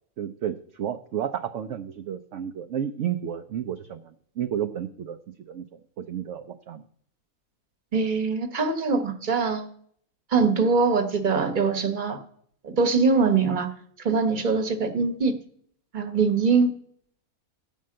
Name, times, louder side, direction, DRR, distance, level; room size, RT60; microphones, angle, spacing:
voice 1, 0.2-5.2 5.5-6.8, right 9 dB, 65° right, 7 dB, 0.9 m, -32 dB
voice 2, 7.9-9.7 10.3-12.2 12.6-13.7 14.0-15.3 15.9-16.7, right 4 dB, 35° right, 8 dB, 1.2 m, -23 dB
13.5 x 5.5 x 7.6 m, 0.64 s
omnidirectional pair, 1.5 m